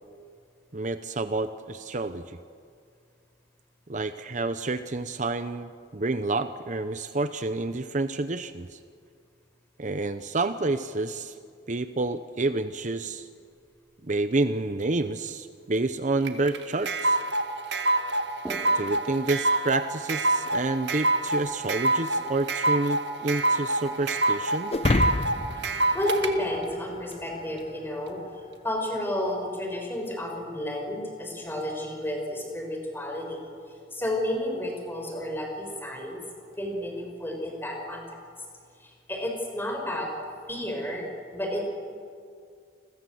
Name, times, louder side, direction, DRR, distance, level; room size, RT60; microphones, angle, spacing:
voice 1, 0.7-2.4 3.9-8.8 9.8-11.3 11.7-13.3 14.0-17.2 18.7-24.7, right 2 dB, 45° right, 10 dB, 0.8 m, -29 dB
sound 1, 13.7-14.9 16.7-16.8 17.0-17.1 18.2-21.6, equal, 10° right, 2.5 m, -46 dB
sound 2, 16.2-26.3, right 2 dB, 75° right, 1.8 m, -26 dB
sound 3, 24.7-27.2, left 2 dB, 35° left, 0.7 m, -28 dB
voice 2, 25.9-28.2 28.6-33.5 33.9-36.2 36.6-38.0 38.8-40.1 40.5-41.0 41.3-41.7, left 1 dB, 10° left, 1 dB, 6.1 m, -31 dB
30.0 x 21.5 x 7.9 m, 2.2 s
head